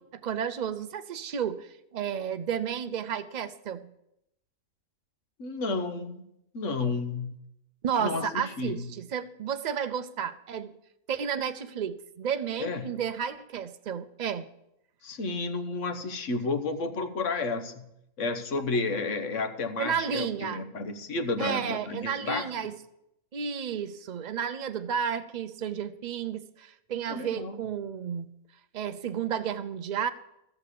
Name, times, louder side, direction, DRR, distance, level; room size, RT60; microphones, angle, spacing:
voice 1, 0.2-3.8 7.8-10.7 11.1-14.5 19.8-20.7 21.4-22.8 23.3-28.3 28.7-30.1, right 8 dB, 80° right, 10 dB, 0.4 m, -32 dB
voice 2, 5.4-6.3 6.5-7.4 8.0-8.9 12.6-12.9 15.0-17.9 18.2-22.5 27.1-27.6, left 3 dB, 60° left, 8 dB, 1.4 m, -31 dB
14.0 x 6.8 x 6.7 m, 0.82 s
omnidirectional pair, 1.5 m